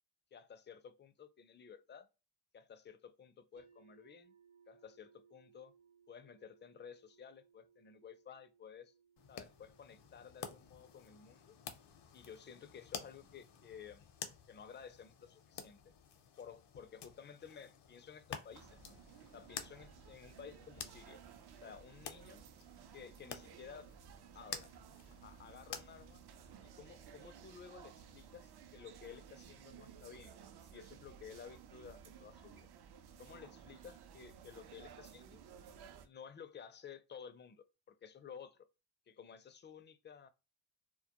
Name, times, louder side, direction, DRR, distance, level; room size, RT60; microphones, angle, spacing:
voice 1, 0.3-2.1 2.5-4.3 4.7-5.7 6.1-8.9 9.3-11.6 12.1-14.2 14.5-15.9 16.4-19.0 19.3-21.2 21.6-22.4 22.9-23.9 24.3-24.7 25.1-26.2 26.6-32.7 33.2-35.4 36.0-38.7 39.1-40.3, left 7 dB, 25° left, 0.4 m, -54 dB
sound 1, 3.6-15.5, right 7 dB, 85° right, 0.8 m, -70 dB
sound 2, 9.2-26.5, left 7 dB, 70° left, 0.6 m, -51 dB
sound 3, 18.5-36.1, right 8 dB, 60° right, 0.6 m, -56 dB
2.2 x 2.1 x 2.8 m
cardioid pair, 55°, 43 cm